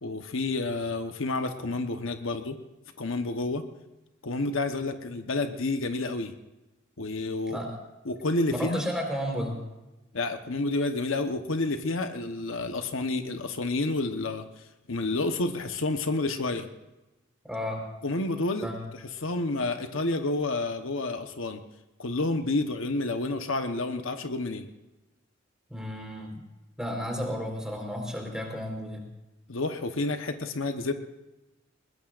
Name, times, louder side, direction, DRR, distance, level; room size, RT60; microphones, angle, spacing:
voice 1, 0.0-2.6 3.0-3.6 4.2-6.3 7.0-7.6 8.0-8.8 10.1-16.7 18.0-21.6 22.0-24.7 29.5-30.9, left 2 dB, 70° left, 7 dB, 1.1 m, -29 dB
voice 2, 8.6-9.6 17.4-17.8 18.6-18.8 25.7-26.4 26.8-29.0, equal, 5° right, 1 dB, 4.1 m, -32 dB
22.0 x 20.5 x 2.5 m, 1.0 s
head